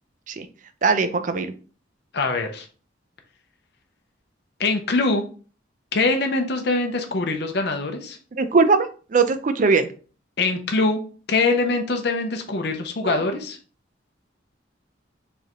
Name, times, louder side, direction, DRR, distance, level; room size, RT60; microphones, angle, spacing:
voice 1, 0.8-1.5 8.3-9.9 13.0-13.2, right 4 dB, 45° right, 10 dB, 0.4 m, -20 dB
voice 2, 2.1-2.7 4.6-5.2 5.9-8.2 10.4-11.0 11.3-13.6, left 3 dB, 60° left, 5 dB, 0.7 m, -23 dB
4.5 x 3.3 x 3.0 m, 0.39 s
head